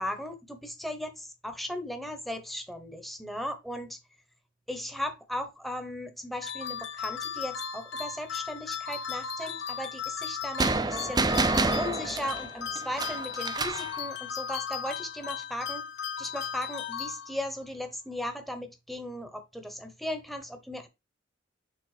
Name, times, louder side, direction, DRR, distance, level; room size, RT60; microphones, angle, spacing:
voice 1, 0.0-4.0 4.7-11.5 11.8-15.9 16.2-20.9, left 1 dB, ahead, 1.0 m, -37 dB
sound 1, 6.4-17.6, left 7 dB, 60° left, 0.8 m, -36 dB
sound 2, 10.6-13.9, right 3 dB, 20° right, 0.5 m, -28 dB
6.6 x 3.8 x 4.9 m
head